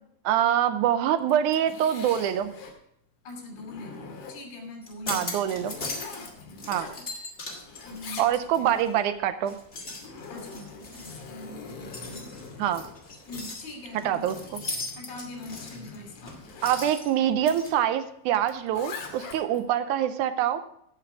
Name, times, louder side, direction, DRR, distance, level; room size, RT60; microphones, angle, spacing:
voice 1, 0.2-2.5 5.1-5.7 6.7-6.9 8.2-9.6 12.6-12.8 14.0-14.6 16.6-20.6, right 10 dB, 80° right, 10 dB, 1.8 m, -25 dB
Zipper (clothing), 1.2-2.8 3.3-4.6 5.2-7.4 7.6-8.8 9.7-16.8 18.4-19.7, left 4 dB, 60° left, 3.0 m, -44 dB
voice 2, 3.2-5.6 6.0-6.6 7.8-8.2 8.6-8.7 10.3-12.3 13.3-14.4 14.9-16.4, left 2 dB, 85° left, 2 dB, 4.8 m, -42 dB
sound 1, 4.8-6.3 6.6-9.0 9.4-17.7, left 2 dB, 30° left, 1.3 m, -39 dB
16.0 x 6.0 x 4.7 m, 0.72 s
omnidirectional pair, 4.3 m